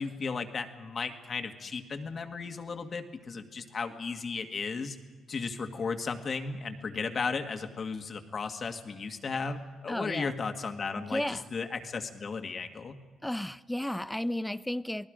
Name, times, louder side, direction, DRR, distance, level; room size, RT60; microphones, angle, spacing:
voice 1, 0.0-5.0 5.3-13.0, left 4 dB, 45° left, 1.9 m, -35 dB
voice 2, 9.9-10.3 11.0-11.4 13.2-15.1, left 1 dB, 5° left, 0.6 m, -33 dB
28.5 x 19.5 x 5.1 m
cardioid pair, 90°, 0 cm